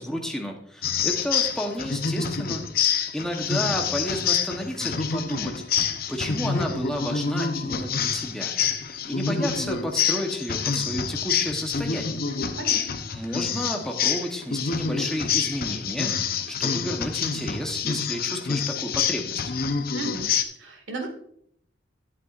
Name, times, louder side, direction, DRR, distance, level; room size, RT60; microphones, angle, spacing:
voice 1, 0.0-2.7 3.1-5.6 6.1-8.6 8.8-12.2 13.1-16.2 16.5-19.5, equal, 5° left, 1 dB, 1.0 m, -31 dB
sound 1, 0.8-20.4, left 6 dB, 50° left, 0.7 m, -27 dB
voice 2, 12.3-12.9 19.9-20.3 20.6-21.1, right 3 dB, 85° right, 4 dB, 2.1 m, -35 dB
12.0 x 8.2 x 2.5 m, 0.68 s
head